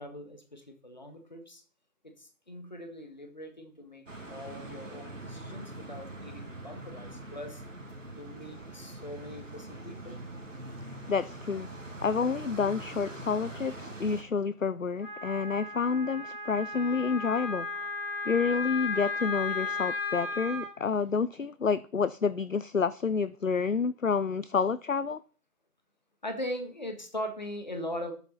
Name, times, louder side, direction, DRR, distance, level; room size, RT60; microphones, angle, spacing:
voice 1, 0.0-1.6 2.0-4.0 4.3-7.6 8.1-10.2 26.2-28.1, equal, 30° left, 1.5 m, -40 dB
sound 1, 4.1-14.2, right 1 dB, 55° right, 2.4 m, -43 dB
voice 2, 11.1-11.7 12.0-17.9 18.3-25.2, left 5 dB, 55° left, 0.5 m, -29 dB
Wind instrument woodwind instrument, 15.0-20.7, left 3 dB, 5° left, 4.0 m, -35 dB
11.5 x 8.9 x 4.2 m
figure-of-eight pair, 165°, 47 cm